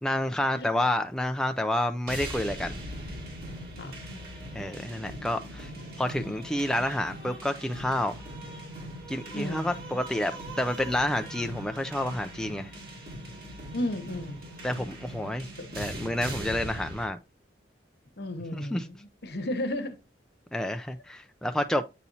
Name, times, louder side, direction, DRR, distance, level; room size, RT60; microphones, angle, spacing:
voice 1, 0.0-2.8 4.5-5.7 6.0-8.2 9.1-12.7 14.6-15.5 15.8-17.2 18.6-18.9 20.5-21.8, left 1 dB, 5° left, 0.3 m, -29 dB
sound 1, 2.1-17.0, right 1 dB, 55° right, 2.2 m, -40 dB
voice 2, 9.3-9.7 13.7-14.4 15.6-15.8 18.2-20.0, left 1 dB, 60° left, 0.9 m, -34 dB
8.3 x 4.2 x 2.7 m
head